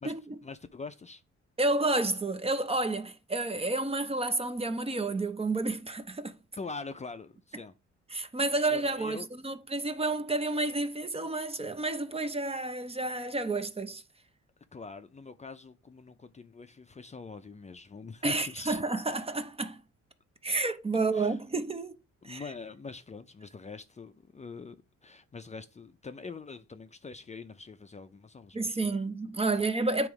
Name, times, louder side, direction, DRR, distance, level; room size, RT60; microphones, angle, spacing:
voice 1, 0.4-1.2 6.6-7.7 8.7-9.3 14.7-18.8 21.1-21.4 22.2-24.8 25.0-29.0, left 4 dB, 25° left, 0.5 m, -44 dB
voice 2, 1.6-6.4 8.1-14.0 18.2-19.8 20.4-21.9 22.2-22.4 28.5-30.1, right 2 dB, 20° right, 0.6 m, -30 dB
8.8 x 3.0 x 4.7 m
cardioid pair, 90°, 30 cm